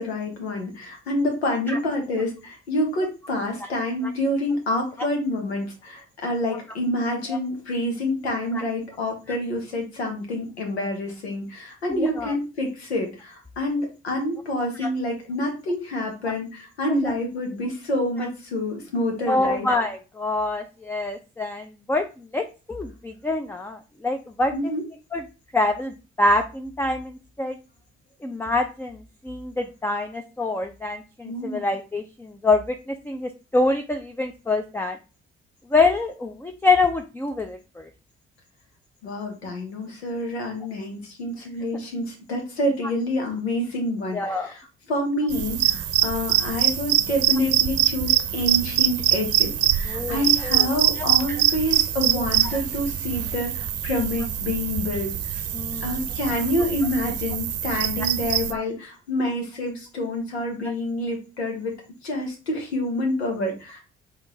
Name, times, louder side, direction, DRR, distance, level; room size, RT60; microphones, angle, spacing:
voice 1, 0.0-19.7 24.5-24.8 31.2-31.7 39.0-55.4 55.8-61.7 62.0-63.8, left 1 dB, 90° left, 2 dB, 1.0 m, -27 dB
voice 2, 11.9-12.3 14.8-14.9 17.0-17.1 19.3-22.0 22.3-24.5 25.1-25.2 25.5-27.1 27.4-27.6 28.2-29.0 29.2-35.0 35.7-37.9 44.1-44.5 49.9-50.7 51.3-51.4 55.5-55.8 58.5-58.6, left 2 dB, 5° left, 5 dB, 0.5 m, -25 dB
sound 1, 45.3-58.5, right 12 dB, 50° right, 0.7 m, -24 dB
3.6 x 3.4 x 3.0 m, 0.31 s
hypercardioid pair, 45°, 31 cm